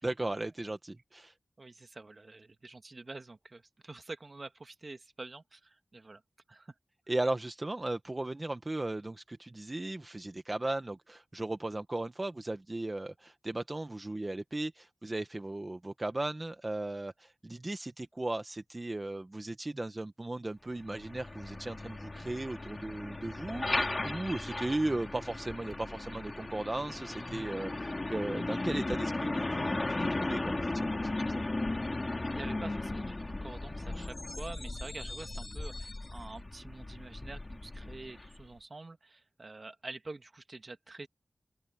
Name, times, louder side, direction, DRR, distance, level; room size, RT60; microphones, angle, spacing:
voice 1, 0.0-1.3 7.1-31.4, right 2 dB, 30° right, 1.1 m, -36 dB
voice 2, 1.6-6.2 6.5-6.8 32.3-41.1, right 3 dB, 45° right, 1.9 m, -47 dB
Truck, 20.8-38.5, left 2 dB, 35° left, 2.3 m, -36 dB
open air
wide cardioid pair, 90°, 0 cm